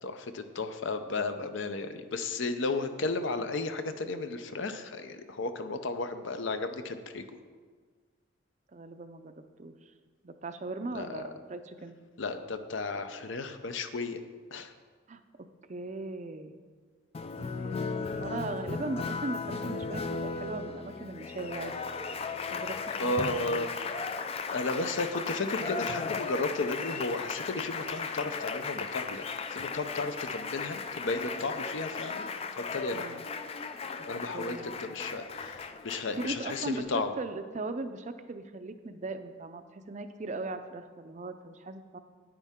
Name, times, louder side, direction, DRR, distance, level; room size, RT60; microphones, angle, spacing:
voice 1, 0.0-7.3 10.9-11.2 12.2-14.2 14.5-14.7 23.0-23.7 24.5-29.2 29.5-33.0 34.1-37.1, left 3 dB, 65° left, 9 dB, 0.6 m, -34 dB
voice 2, 8.7-9.3 9.6-9.7 10.2-12.0 15.1-15.2 15.7-16.5 17.4-21.8 22.5-23.7 32.9-33.2 34.3-34.7 36.2-42.0, right 2 dB, 35° right, 9 dB, 0.5 m, -38 dB
Applause, 17.1-36.8, left 4 dB, 30° left, 0.3 m, -36 dB
9.7 x 9.2 x 3.6 m, 1.5 s
head